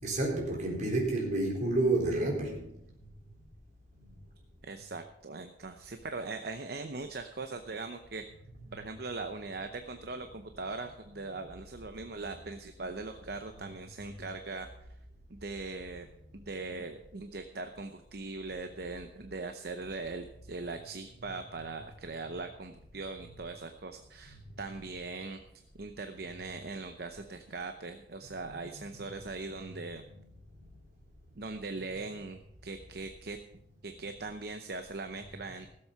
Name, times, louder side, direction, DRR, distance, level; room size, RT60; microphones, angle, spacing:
voice 1, 0.0-2.6 28.5-28.6, right 2 dB, 45° right, 4.0 m, -29 dB
voice 2, 4.6-8.2 8.7-14.7 15.3-16.1 16.3-25.4 25.8-30.0 31.4-33.4 33.8-35.7, right 3 dB, 60° right, 0.8 m, -40 dB
16.5 x 7.7 x 5.8 m
head